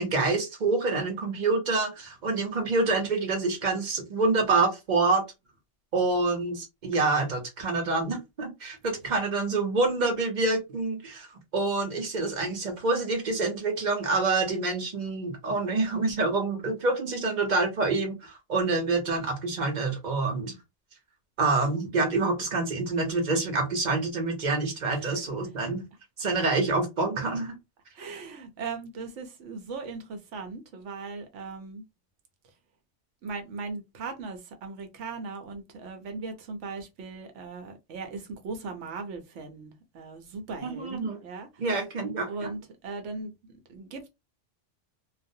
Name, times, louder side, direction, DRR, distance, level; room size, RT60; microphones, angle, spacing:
voice 1, 0.0-5.2 5.9-11.3 11.5-20.5 21.4-25.8 26.2-27.5 40.6-41.2 41.6-42.5, right 3 dB, 45° right, 0.8 m, -27 dB
voice 2, 27.9-31.8 33.2-41.6 42.3-44.1, right 4 dB, 80° right, 1.0 m, -38 dB
2.4 x 2.0 x 2.6 m
omnidirectional pair, 1.2 m